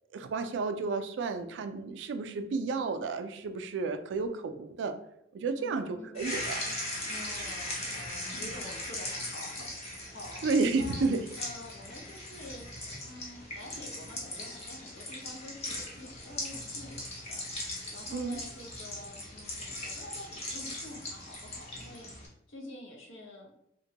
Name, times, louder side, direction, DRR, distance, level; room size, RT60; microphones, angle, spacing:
voice 1, 0.1-4.9 5.3-6.7 10.4-11.2 18.1-18.4, right 4 dB, 65° right, 8 dB, 0.3 m, -31 dB
voice 2, 5.6-6.2 7.1-10.5 10.7-11.1 11.4-12.7 13.0-23.7, left 1 dB, 70° left, 1 dB, 0.7 m, -47 dB
sound 1, 6.1-22.3, left 1 dB, 35° left, 0.7 m, -39 dB
2.9 x 2.2 x 2.7 m, 0.79 s
head